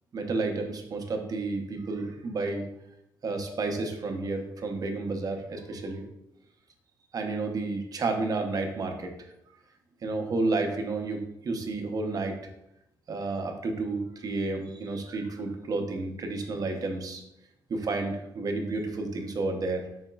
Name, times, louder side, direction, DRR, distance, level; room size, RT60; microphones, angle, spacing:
voice 1, 0.1-2.7 3.2-6.0 7.1-9.1 10.0-12.4 13.1-17.2 17.7-19.8, right 3 dB, 50° right, 4 dB, 0.6 m, -31 dB
3.9 x 3.6 x 2.2 m, 0.84 s
cardioid pair, 75°, 8 cm